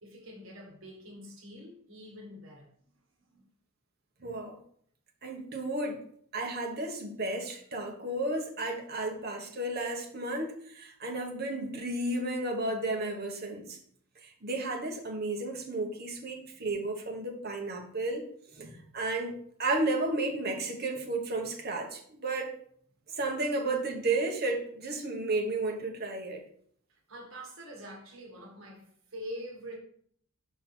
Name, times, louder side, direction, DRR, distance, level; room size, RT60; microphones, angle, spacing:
voice 1, 0.0-2.7 3.3-3.4 16.5-16.6 26.9-29.8, equal, 65° right, 1 dB, 1.6 m, -45 dB
voice 2, 4.2-4.6 5.2-6.0 6.3-13.8 14.2-18.2 18.5-22.5 23.1-26.4, right 2 dB, 45° right, 2 dB, 1.1 m, -33 dB
5.9 x 5.2 x 4.3 m, 0.62 s
head